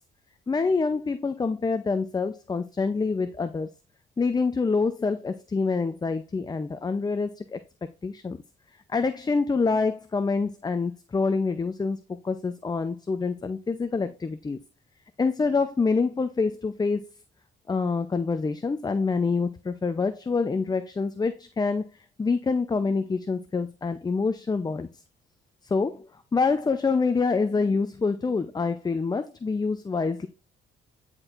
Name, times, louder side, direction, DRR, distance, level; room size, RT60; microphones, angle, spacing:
voice 1, 0.5-3.7 4.2-7.6 8.0-8.4 8.9-12.0 12.2-14.6 15.2-17.0 17.7-21.9 22.2-24.9 25.7-26.1 26.3-30.3, left 4 dB, 20° left, 0.5 m, -26 dB
9.6 x 4.4 x 2.5 m
cardioid pair, 90°, 20 cm